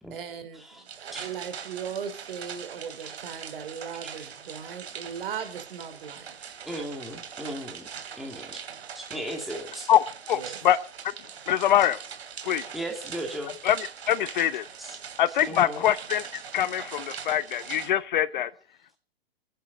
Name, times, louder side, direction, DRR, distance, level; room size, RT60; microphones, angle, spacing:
voice 1, 0.1-6.4 10.3-10.7, right 7 dB, 60° right, 10 dB, 3.1 m, -38 dB
sound 1, 0.9-17.9, right 7 dB, 85° right, 2.8 m, -42 dB
voice 2, 6.7-7.9 8.2-8.6 9.0-9.9 10.5-10.6 12.7-13.6 14.8-15.0 15.5-15.9, right 1 dB, ahead, 1 dB, 2.2 m, -36 dB
voice 3, 10.3-10.8 11.5-12.0 12.4-12.6 13.6-13.8 14.1-14.7 15.2-18.5, left 11 dB, 50° left, 17 dB, 0.7 m, -23 dB
28.5 x 10.0 x 3.9 m, 0.41 s
hypercardioid pair, 160°, 31 cm